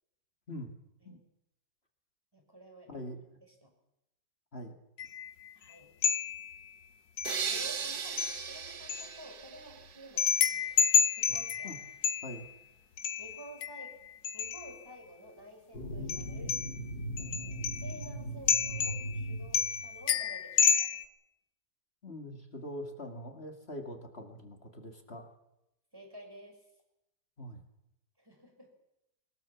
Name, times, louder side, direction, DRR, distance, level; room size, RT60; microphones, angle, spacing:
voice 1, 2.3-3.0 3.6-3.7 5.6-5.9 7.3-11.7 13.2-13.9 14.3-16.6 17.2-20.9 25.9-26.6 28.2-28.7, right 1 dB, 10° right, 2 dB, 5.6 m, -51 dB
voice 2, 2.9-3.4 4.5-4.7 11.3-11.4 11.6-11.8 12.2-12.5 22.0-25.3 27.4-27.6, left 1 dB, 35° left, 4 dB, 2.5 m, -43 dB
sound 1, 5.0-5.5 6.0-6.7 7.2-7.9 8.2-9.1 10.2-12.5 13.0-14.8 16.1-16.8 17.2-18.1 18.5-19.3 19.5-21.0, left 7 dB, 85° left, 1.7 m, -30 dB
sound 2, 7.2-10.3, right 7 dB, 60° right, 1.8 m, -37 dB
sound 3, 15.7-20.0, right 1 dB, 70° left, 5.1 m, -39 dB
22.5 x 20.5 x 7.2 m, 0.87 s
omnidirectional pair, 1.9 m